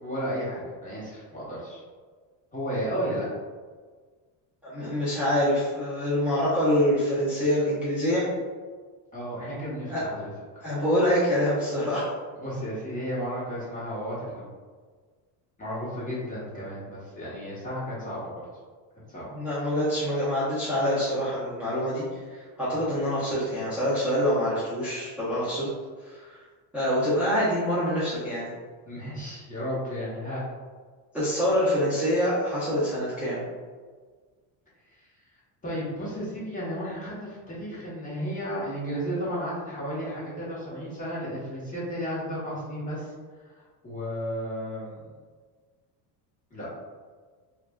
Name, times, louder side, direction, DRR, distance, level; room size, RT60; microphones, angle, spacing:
voice 1, 0.0-1.8 2.5-3.3 9.1-10.7 12.4-14.5 15.6-18.3 19.1-19.3 22.7-22.8 28.9-30.4 35.6-43.1 43.5-45.0 46.5-46.7, equal, 20° left, -8 dB, 1.1 m, -33 dB
voice 2, 4.6-8.2 9.9-10.0 10.6-12.0 19.3-25.7 26.0-26.4 26.7-28.5 31.1-33.4, equal, 5° right, -13 dB, 0.7 m, -25 dB
3.3 x 2.4 x 2.3 m, 1.5 s
cardioid pair, 130°, 43 cm